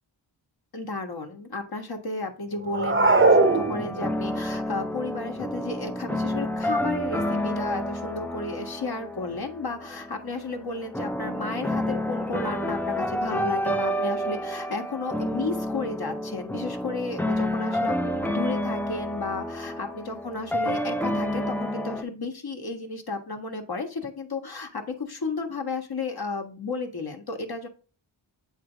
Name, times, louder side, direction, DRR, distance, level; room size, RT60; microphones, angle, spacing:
voice 1, 0.7-27.7, left 3 dB, 50° left, 4 dB, 1.4 m, -33 dB
sound 1, 2.7-4.3, right 3 dB, 25° right, 0.8 m, -20 dB
sound 2, 3.1-22.0, equal, 5° left, 0.5 m, -29 dB
7.8 x 3.3 x 4.9 m, 0.38 s
cardioid pair, 55°, 47 cm